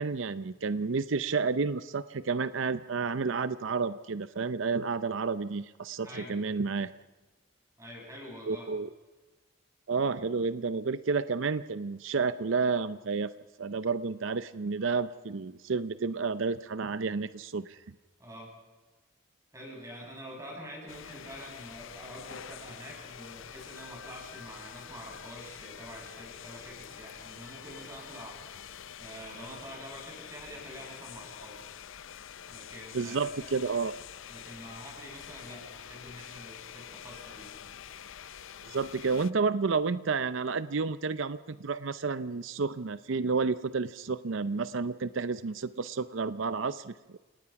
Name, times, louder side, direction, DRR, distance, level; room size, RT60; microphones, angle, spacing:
voice 1, 0.0-6.9 8.4-8.9 9.9-13.3 13.6-17.8 32.9-33.9 38.6-47.2, right 4 dB, 75° right, 13 dB, 0.6 m, -30 dB
voice 2, 6.0-6.4 7.8-8.7 18.2-18.5 19.5-28.4 29.0-31.7 32.4-33.7 34.3-37.6, equal, 15° right, -1 dB, 7.5 m, -46 dB
sound 1, 20.9-39.3, left 9 dB, 75° left, 0.6 m, -46 dB
29.0 x 18.0 x 5.9 m, 1.3 s
head